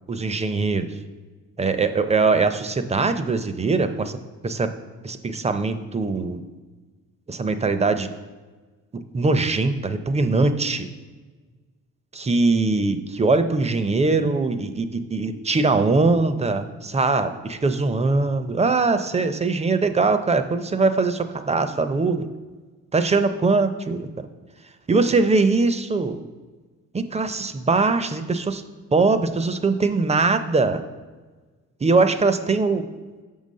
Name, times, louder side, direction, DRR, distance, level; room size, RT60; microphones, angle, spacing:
voice 1, 0.1-0.9 1.6-4.2 4.4-4.7 5.0-6.4 7.3-8.1 9.1-10.9 12.1-22.3 22.9-24.3 24.9-26.2 26.9-28.6 28.9-30.8 31.8-32.9, right 3 dB, 20° right, 10 dB, 0.5 m, -21 dB
5.8 x 5.5 x 6.4 m, 1.3 s
cardioid pair, 90°, 30 cm